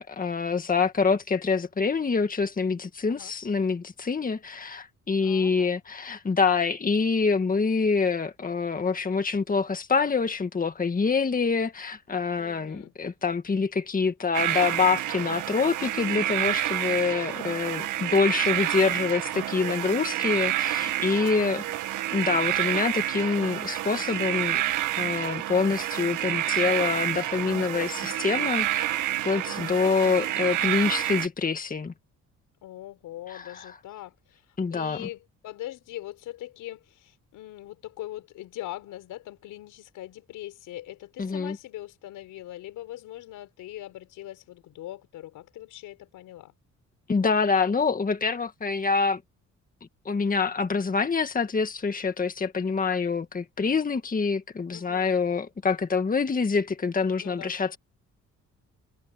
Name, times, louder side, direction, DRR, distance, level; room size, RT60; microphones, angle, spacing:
voice 1, 0.0-21.6 22.1-24.6 25.0-31.9 33.3-33.7 34.6-35.1 41.2-41.6 47.1-49.2 50.1-57.8, left 5 dB, 30° left, 1.7 m, -26 dB
voice 2, 5.2-5.8 12.4-12.9 21.0-21.3 21.7-21.8 29.5-29.7 32.6-46.5 54.7-55.2 57.2-57.5, left 14 dB, 90° left, 5.5 m, -42 dB
sound 1, 14.3-31.3, right 13 dB, 85° right, 1.9 m, -28 dB
cardioid pair, 90°, 30 cm